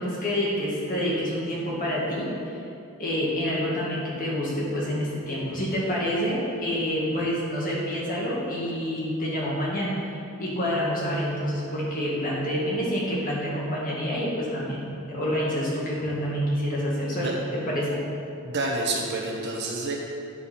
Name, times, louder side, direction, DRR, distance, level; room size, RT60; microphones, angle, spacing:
voice 1, 0.0-2.3 3.0-9.9 10.4-18.0, equal, 40° left, -6 dB, 2.0 m, -27 dB
voice 2, 18.4-19.9, right 2 dB, 50° right, -2 dB, 1.3 m, -28 dB
9.4 x 5.1 x 5.8 m, 2.6 s
head